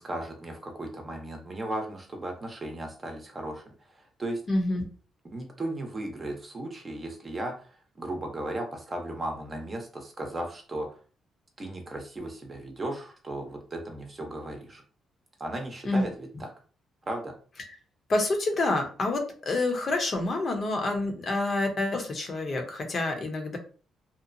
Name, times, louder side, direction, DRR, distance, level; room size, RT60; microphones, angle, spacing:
voice 1, 0.0-3.6 3.9-4.4 5.3-11.0 11.6-14.8 15.4-16.5 17.1-17.3, right 1 dB, 30° right, 3 dB, 0.8 m, -36 dB
voice 2, 4.5-4.8 15.8-16.0 18.1-23.6, left 2 dB, 45° left, 3 dB, 0.8 m, -27 dB
2.9 x 2.0 x 2.6 m, 0.39 s
cardioid pair, 90°, 0 cm